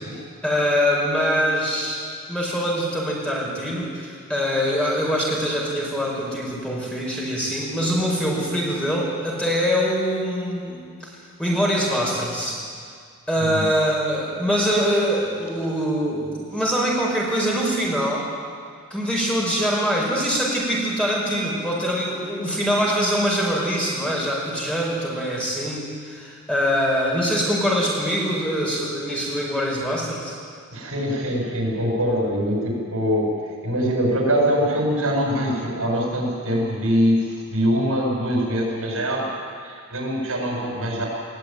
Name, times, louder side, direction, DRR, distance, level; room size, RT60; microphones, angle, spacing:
voice 1, 0.4-11.1 11.4-12.6 13.3-18.3 18.9-30.4, equal, 5° left, -4 dB, 5.1 m, -23 dB
voice 2, 30.7-39.3 39.6-41.1, equal, 75° right, -1 dB, 7.5 m, -23 dB
20.5 x 18.5 x 9.3 m, 2.1 s
head